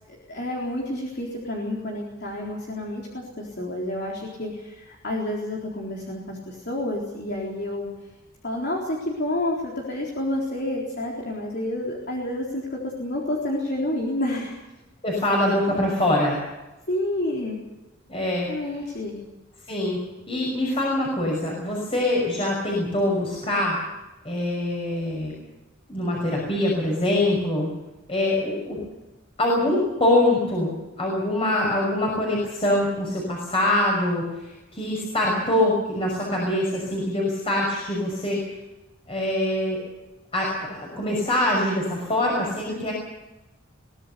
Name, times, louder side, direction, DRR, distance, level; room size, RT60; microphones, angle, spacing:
voice 1, 0.1-7.9 8.4-14.6 16.9-17.6 18.5-19.2, left 1 dB, 50° left, -2 dB, 4.0 m, -29 dB
voice 2, 15.0-16.4 18.1-18.5 19.7-20.0 20.3-23.8 24.2-25.3 25.9-27.7 28.1-28.8 29.4-38.4 39.1-39.8 40.3-42.9, left 1 dB, 25° left, -2 dB, 6.0 m, -24 dB
23.0 x 18.5 x 7.0 m, 1.0 s
head